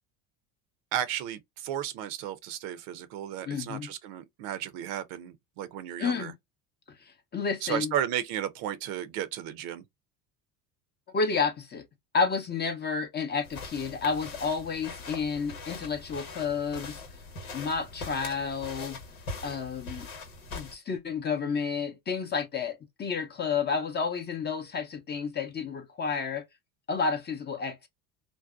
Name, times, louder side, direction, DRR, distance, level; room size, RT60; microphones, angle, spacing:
voice 1, 0.9-6.3 7.6-9.8, right 11 dB, 60° right, 0.6 m, -34 dB
voice 2, 3.5-3.9 6.0-6.3 7.0-7.9 11.1-11.8 12.1-17.0 17.5-19.0 19.4-20.1 20.5-26.4 26.9-27.9, left 5 dB, 25° left, 0.6 m, -30 dB
sound 1, 13.4-20.7, left 3 dB, 90° left, 1.1 m, -42 dB
2.6 x 2.1 x 2.2 m
hypercardioid pair, 80°, 42 cm